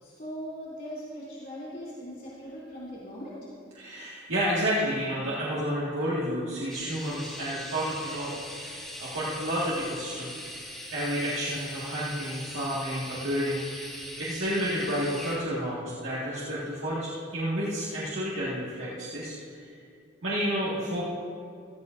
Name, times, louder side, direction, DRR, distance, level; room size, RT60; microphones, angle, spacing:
voice 1, 0.0-3.7, equal, 45° left, -9 dB, 3.0 m, -40 dB
voice 2, 3.8-13.9 14.2-19.6 20.2-21.1, equal, 85° right, -8 dB, 2.0 m, -31 dB
sound 1, 6.7-15.4, equal, ahead, 2.4 m, -41 dB
15.5 x 14.5 x 2.6 m, 2.4 s
head